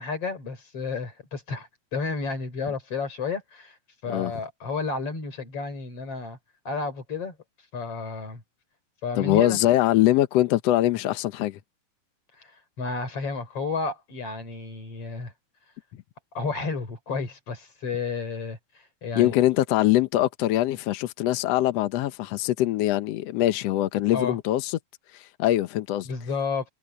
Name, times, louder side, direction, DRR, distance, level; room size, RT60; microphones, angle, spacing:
voice 1, 0.0-3.8 4.0-6.4 6.7-7.4 7.7-8.4 9.0-9.6 12.4-12.5 12.8-15.3 16.4-18.6 19.0-19.3 24.1-24.4 26.1-26.7, left 4 dB, 40° left, 5.2 m, -31 dB
voice 2, 9.2-11.6 19.2-24.8 25.1-26.1, left 14 dB, 80° left, 1.5 m, -23 dB
omnidirectional pair, 4.0 m